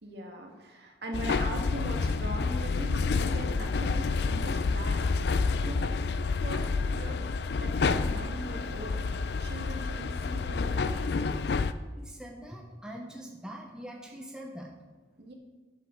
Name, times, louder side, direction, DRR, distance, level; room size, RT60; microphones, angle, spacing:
voice 1, 0.0-5.1 5.6-6.0 6.3-7.3 7.6-9.1 9.4-11.4 15.2-15.3, right 1 dB, 65° right, 2 dB, 1.8 m, -40 dB
sound 1, 1.1-11.7, left 4 dB, 65° left, 0.4 m, -29 dB
voice 2, 12.0-14.7, equal, 5° right, -1 dB, 0.9 m, -43 dB
12.0 x 8.1 x 3.8 m, 1.3 s
head